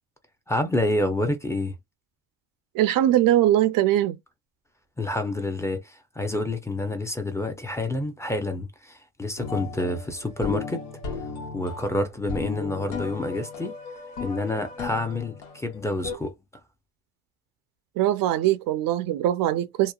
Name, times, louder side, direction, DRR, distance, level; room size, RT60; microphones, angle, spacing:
voice 1, 0.5-1.7 5.0-10.8 11.5-13.7 14.2-16.3, left 1 dB, 5° left, 0.5 m, -28 dB
voice 2, 2.7-4.2 18.0-19.9, right 13 dB, 60° right, 0.5 m, -21 dB
sound 1, 9.4-16.2, left 4 dB, 85° left, 1.1 m, -36 dB
2.9 x 2.1 x 2.3 m
cardioid pair, 110°, 39 cm